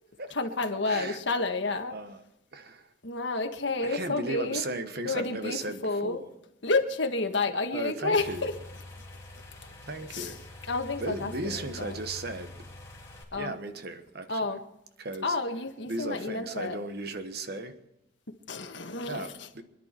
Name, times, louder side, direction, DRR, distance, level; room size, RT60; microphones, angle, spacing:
voice 1, 0.3-1.9 3.0-4.6 5.0-5.6 5.8-6.2 6.6-8.5 10.1-10.3 10.7-12.0 13.3-13.5 14.3-14.6 15.2-16.8 18.5-19.5, left 3 dB, 65° left, 1.6 m, -30 dB
voice 2, 0.9-1.2 1.9-2.2 2.5-2.9 3.8-6.3 7.7-8.5 9.8-10.7 11.0-12.5 13.3-14.6 15.0-15.4 15.9-17.8 19.0-19.6, right 2 dB, 50° right, 1.3 m, -36 dB
sound 1, 8.2-13.2, left 1 dB, 15° left, 3.0 m, -46 dB
26.0 x 11.0 x 4.5 m
head